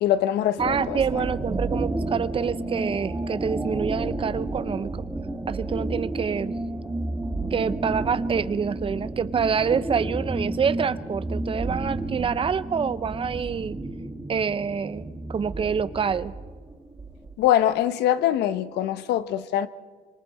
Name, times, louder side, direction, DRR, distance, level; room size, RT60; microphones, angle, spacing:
voice 1, 0.0-1.0 17.4-19.7, left 12 dB, 80° left, 1.0 m, -23 dB
sound 1, 0.6-17.3, right 2 dB, 15° right, 1.6 m, -31 dB
voice 2, 0.6-4.9 5.5-6.5 7.5-13.8 14.3-16.3, right 6 dB, 30° right, 0.7 m, -26 dB
26.0 x 25.0 x 4.3 m
cardioid pair, 110°, 17 cm